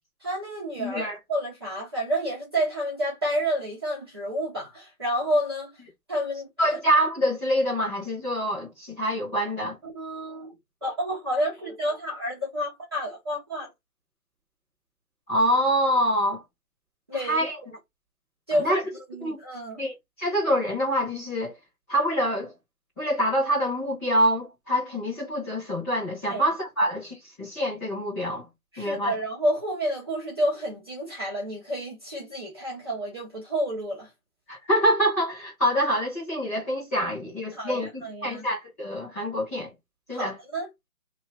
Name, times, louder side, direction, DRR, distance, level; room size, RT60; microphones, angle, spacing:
voice 1, 0.2-5.7 6.1-6.7 9.8-10.5 10.8-13.7 17.1-17.4 18.5-19.8 26.3-26.4 28.7-34.1 37.5-38.4 40.1-40.7, equal, 20° right, 0.9 m, -29 dB
voice 2, 0.8-1.2 6.6-9.8 15.3-16.4 17.1-17.6 18.6-18.8 19.2-19.4 19.8-21.5 21.9-22.5 23.0-28.4 28.8-29.1 34.5-39.7 40.1-40.4, equal, 10° left, 1.4 m, -26 dB
3.1 x 3.1 x 4.1 m
hypercardioid pair, 170°, 42 cm